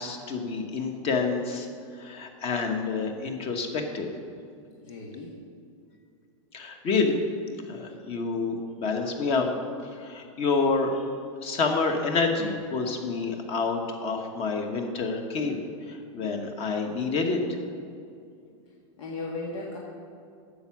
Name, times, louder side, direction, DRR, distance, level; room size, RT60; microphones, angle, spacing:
voice 1, 0.0-1.7 2.0-4.1 6.5-7.2 7.7-9.5 9.9-11.0 11.4-15.6 15.9-17.4, left 4 dB, 35° left, 4 dB, 1.3 m, -28 dB
voice 2, 4.8-5.4 19.0-19.8, left 3 dB, 75° left, -3 dB, 1.7 m, -36 dB
9.5 x 7.1 x 6.0 m, 2.4 s
supercardioid pair, 140°, 17 cm